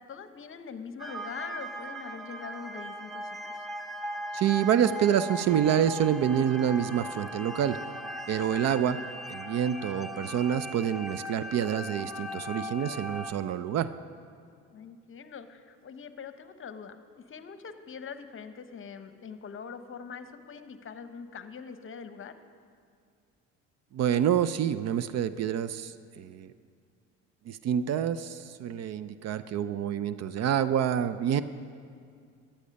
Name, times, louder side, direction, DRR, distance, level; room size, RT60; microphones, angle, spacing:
voice 1, 0.1-3.7 8.9-9.1 14.7-22.3, left 6 dB, 35° left, 10 dB, 0.9 m, -43 dB
sound 1, 1.0-13.3, equal, ahead, 0.8 m, -39 dB
voice 2, 4.3-7.8 8.3-9.0 9.3-13.9 23.9-26.5 27.5-31.4, right 9 dB, 45° right, 14 dB, 0.5 m, -27 dB
14.5 x 10.0 x 5.3 m, 2.2 s
hypercardioid pair, 65°, 36 cm